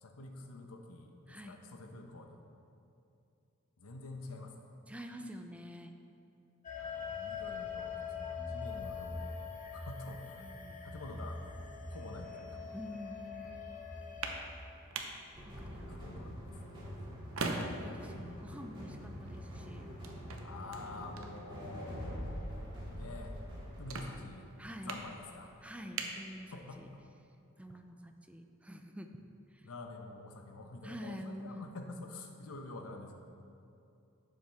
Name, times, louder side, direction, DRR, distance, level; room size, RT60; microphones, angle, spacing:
voice 1, 0.0-2.4 3.8-4.7 6.8-9.4 9.7-10.5 10.8-11.4 11.9-12.6 15.6-16.3 16.6-17.0 20.4-23.4 23.8-24.5 24.9-25.5 26.5-26.8 27.7-27.8 29.6-33.1, left 2 dB, 85° left, 4 dB, 1.0 m, -48 dB
voice 2, 1.3-1.6 4.9-5.9 10.4-10.8 12.7-13.5 15.5-16.1 17.5-19.9 24.6-25.0 25.6-26.5 26.8-26.9 27.6-29.1 29.5-29.7 30.8-31.7, equal, 5° right, 5 dB, 0.4 m, -47 dB
sound 1, 6.6-14.4, left 5 dB, 35° left, 1.2 m, -43 dB
sound 2, 13.9-27.0, right 3 dB, 70° right, 0.8 m, -45 dB
sound 3, 15.3-24.0, equal, 25° right, 2.2 m, -45 dB
11.5 x 7.5 x 3.5 m, 2.7 s
head